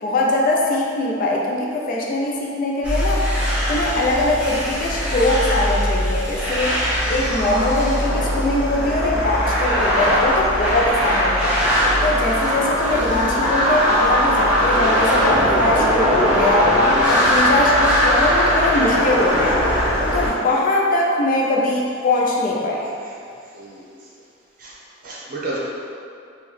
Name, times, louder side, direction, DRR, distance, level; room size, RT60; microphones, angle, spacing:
voice 1, 0.0-3.2 3.7-6.8 7.1-11.6 12.0-16.8 17.1-19.6 20.1-22.9, left 2 dB, 45° left, -2 dB, 0.3 m, -21 dB
sound 1, 2.8-20.3, equal, 5° right, 0.5 m, -20 dB
voice 2, 11.9-12.2 17.1-17.2 23.5-23.8 24.6-24.7 25.0-25.6, right 2 dB, 45° right, -6 dB, 0.6 m, -32 dB
3.4 x 2.1 x 3.2 m, 2.4 s
head